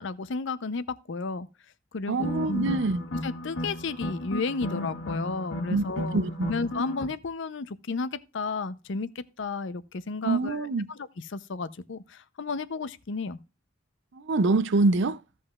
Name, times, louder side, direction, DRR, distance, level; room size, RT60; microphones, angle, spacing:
voice 1, 0.0-1.5 1.9-2.8 3.2-13.4, left 4 dB, 65° left, 0.6 m, -33 dB
sound 1, 2.1-7.1, left 1 dB, 85° left, 1.5 m, -35 dB
voice 2, 2.1-3.0 5.7-6.5 10.2-10.9 14.1-15.2, right 3 dB, 65° right, 0.5 m, -25 dB
16.0 x 5.4 x 2.4 m
head